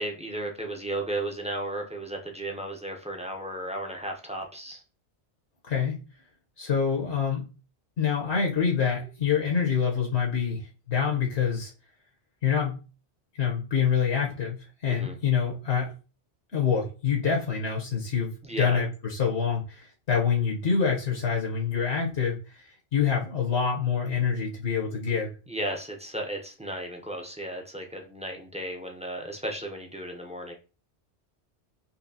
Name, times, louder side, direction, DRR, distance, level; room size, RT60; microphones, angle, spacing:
voice 1, 0.0-4.8 14.9-15.2 18.4-18.8 25.5-30.5, right 1 dB, 10° right, 1 dB, 0.4 m, -34 dB
voice 2, 6.6-7.4 8.0-11.7 12.4-12.8 13.4-15.9 16.5-22.6 22.9-25.3, left 6 dB, 70° left, 0 dB, 1.1 m, -26 dB
4.2 x 2.8 x 2.7 m, 0.34 s
omnidirectional pair, 1.1 m